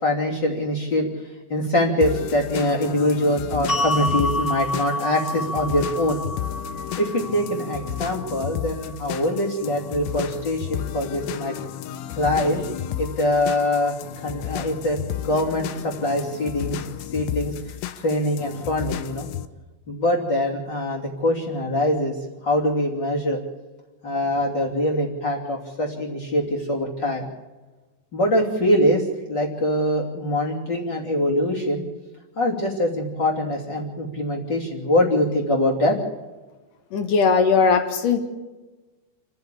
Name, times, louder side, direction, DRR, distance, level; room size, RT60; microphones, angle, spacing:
voice 1, 0.0-1.1 1.5-6.2 7.0-11.6 12.1-12.6 13.0-16.9 17.1-19.3 19.9-22.1 22.4-23.4 24.0-27.3 28.1-31.8 32.4-36.0, left 1 dB, 30° left, -2 dB, 2.7 m, -23 dB
sound 1, 2.0-19.5, left 12 dB, 85° left, 3.5 m, -33 dB
sound 2, 3.7-9.9, left 1 dB, ahead, 3.6 m, -30 dB
voice 2, 36.9-38.2, left 5 dB, 60° left, 6 dB, 2.3 m, -19 dB
29.0 x 10.5 x 8.5 m, 1.2 s
omnidirectional pair, 5.7 m